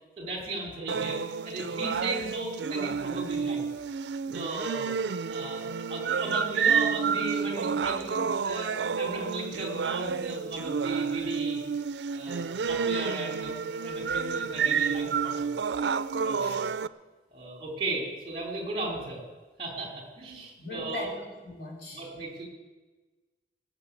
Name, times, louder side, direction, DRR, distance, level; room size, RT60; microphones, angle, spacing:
voice 1, 0.2-3.7 4.3-4.9 5.3-11.6 12.1-15.6 16.2-16.7 17.3-19.2 19.6-21.1 21.9-22.4, right 2 dB, 30° right, -1 dB, 3.9 m, -36 dB
sound 1, 0.9-16.9, right 6 dB, 85° right, 0.4 m, -30 dB
voice 2, 20.6-22.0, left 2 dB, 75° left, -2 dB, 3.7 m, -39 dB
20.0 x 7.0 x 8.4 m, 1.3 s
head